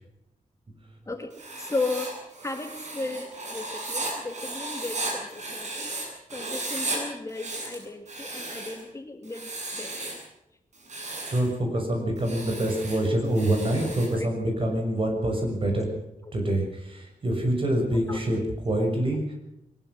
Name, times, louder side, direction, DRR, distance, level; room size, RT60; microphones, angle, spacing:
voice 1, 1.1-2.1 2.4-5.9 6.3-10.2 14.1-14.6 16.2-16.3 18.1-18.2 18.8-18.9, left 3 dB, 20° left, 5 dB, 1.7 m, -35 dB
Writing, 1.3-6.0 6.3-7.0 7.3-8.8 9.3-10.2 10.7-11.5 12.2-14.1, right 2 dB, 55° right, 7.8 m, -35 dB
voice 2, 11.3-15.9 16.3-18.4 18.6-19.2, right 1 dB, 40° right, 2 dB, 6.7 m, -26 dB
22.0 x 20.5 x 6.3 m, 0.84 s
wide cardioid pair, 180°, 14 cm